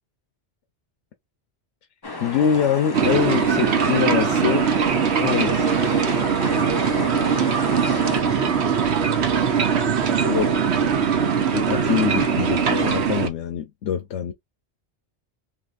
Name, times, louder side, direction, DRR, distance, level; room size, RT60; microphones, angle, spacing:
sound 1, 2.0-8.2, left 3 dB, 25° left, 0.6 m, -32 dB
voice 1, 2.2-4.7 5.2-6.1 10.2-10.7 11.5-14.3, left 8 dB, 90° left, 1.0 m, -24 dB
sound 2, 2.9-13.3, right 6 dB, 75° right, 1.1 m, -21 dB
voice 2, 7.8-8.7, left 3 dB, 15° right, 1.6 m, -41 dB
3.9 x 3.0 x 2.5 m
omnidirectional pair, 1.2 m